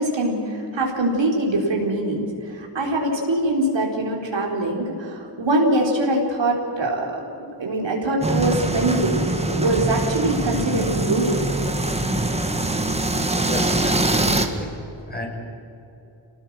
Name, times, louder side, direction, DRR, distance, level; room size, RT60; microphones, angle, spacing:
voice 1, 0.0-7.2 7.6-11.4, right 1 dB, 65° right, 0 dB, 4.4 m, -23 dB
sound 1, 8.2-14.5, right 2 dB, 15° right, 1.9 m, -23 dB
voice 2, 13.3-14.7 15.1-15.3, left 1 dB, 20° left, 0 dB, 5.8 m, -32 dB
27.0 x 19.0 x 6.2 m, 2.9 s
wide cardioid pair, 85°, 47 cm